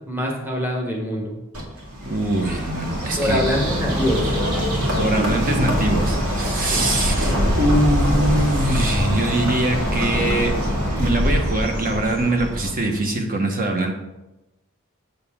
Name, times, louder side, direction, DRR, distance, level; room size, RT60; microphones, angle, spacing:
voice 1, 0.1-1.4 3.2-4.2 6.7-7.0, equal, 10° right, 0 dB, 1.1 m, -24 dB
Bird, 1.5-13.0, equal, 90° right, 2.2 m, -23 dB
voice 2, 2.0-3.4 5.0-10.5 11.0-13.9, right 1 dB, 40° right, 3 dB, 1.2 m, -22 dB
8.0 x 6.7 x 3.6 m, 0.98 s
head